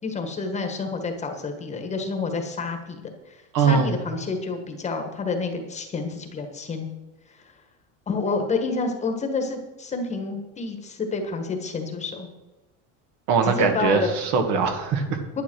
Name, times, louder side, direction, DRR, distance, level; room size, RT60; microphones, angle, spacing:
voice 1, 0.0-6.9 7.3-7.5 8.1-12.3 13.4-14.1 15.3-15.4, left 4 dB, 20° left, 5 dB, 1.5 m, -29 dB
voice 2, 3.5-3.9 13.3-15.2, right 5 dB, 60° right, 6 dB, 2.1 m, -21 dB
10.5 x 10.0 x 6.2 m, 1.1 s
cardioid pair, 155°, 34 cm